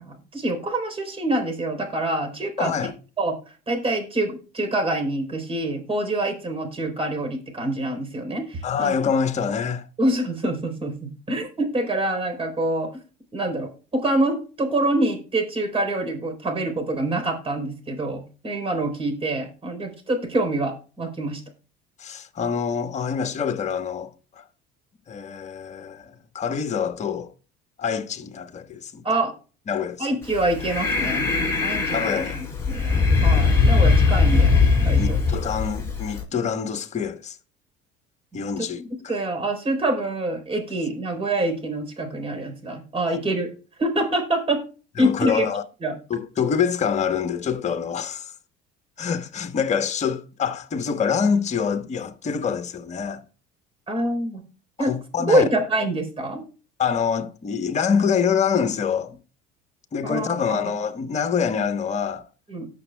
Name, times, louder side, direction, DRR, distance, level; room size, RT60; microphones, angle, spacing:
voice 1, 0.0-2.7 3.2-3.4 3.7-8.9 10.0-12.9 13.3-21.4 29.0-29.3 30.0-31.3 31.6-34.6 34.8-35.2 38.6-43.5 43.8-44.6 45.0-45.4 45.8-45.9 53.9-54.4 54.8-54.9 55.3-56.4 60.0-60.7 62.5-62.7, right 1 dB, 30° right, 4.2 m, -26 dB
voice 2, 2.6-2.9 8.6-9.9 22.0-24.1 24.4-24.5 25.1-27.3 27.8-29.0 29.7-30.1 31.9-32.3 35.0-37.4 38.3-39.2 43.1-43.2 45.0-45.6 46.1-48.3 49.0-53.2 54.8-55.4 56.8-59.2 59.9-62.3, left 6 dB, 35° left, 1.4 m, -25 dB
Breathing, 30.2-36.2, left 4 dB, 15° left, 4.8 m, -20 dB
19.0 x 6.3 x 2.3 m
supercardioid pair, 95°, 19 cm